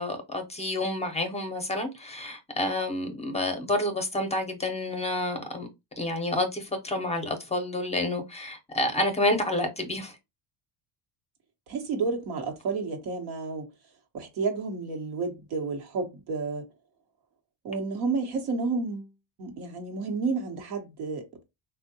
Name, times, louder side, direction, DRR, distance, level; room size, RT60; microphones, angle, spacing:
voice 1, 0.0-5.7 6.0-10.2, left 1 dB, 15° left, 0.6 m, -29 dB
voice 2, 11.7-13.7 14.1-16.7 17.6-19.1 19.4-21.3, right 4 dB, 80° right, 1.0 m, -31 dB
3.4 x 2.2 x 2.6 m
supercardioid pair, 95°, 42 cm